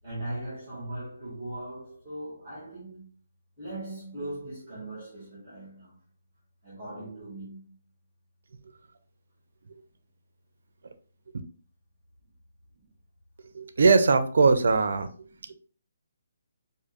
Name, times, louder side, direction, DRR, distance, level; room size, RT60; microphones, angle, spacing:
voice 1, 0.0-3.1 3.6-5.9 6.6-7.7 12.7-12.9 15.5-15.6, right 1 dB, 10° right, 1.5 m, -39 dB
voice 2, 13.5-15.1, right 4 dB, 60° right, 0.5 m, -20 dB
4.9 x 2.5 x 2.5 m
hypercardioid pair, 175°, 0 cm